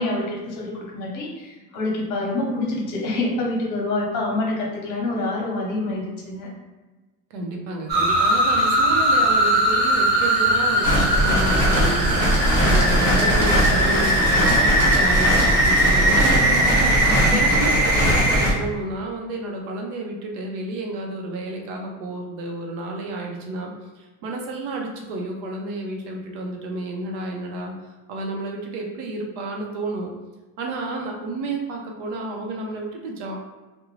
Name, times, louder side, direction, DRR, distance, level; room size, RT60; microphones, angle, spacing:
voice 1, 0.0-6.5 17.3-17.4, left 2 dB, 50° left, -2 dB, 0.9 m, -26 dB
voice 2, 7.3-27.7 28.1-30.1 30.6-33.4, right 2 dB, 90° right, 1 dB, 0.7 m, -31 dB
sound 1, 7.9-18.5, right 1 dB, 30° right, 0.4 m, -20 dB
sound 2, 10.8-18.5, equal, 5° left, 0.9 m, -21 dB
2.5 x 2.2 x 3.1 m, 1.2 s
cardioid pair, 160°, 36 cm